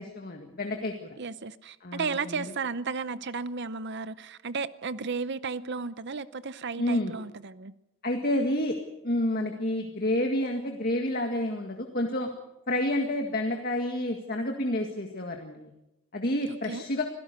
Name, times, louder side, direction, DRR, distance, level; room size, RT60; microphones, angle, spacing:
voice 1, 0.0-1.2 1.8-2.5 6.8-7.1 8.0-8.8 9.0-12.3 12.7-15.7 16.1-17.0, left 1 dB, 45° left, 3 dB, 1.9 m, -29 dB
voice 2, 1.2-7.7 16.5-16.8, right 4 dB, 50° right, 14 dB, 0.7 m, -34 dB
26.0 x 17.0 x 6.8 m, 0.92 s
head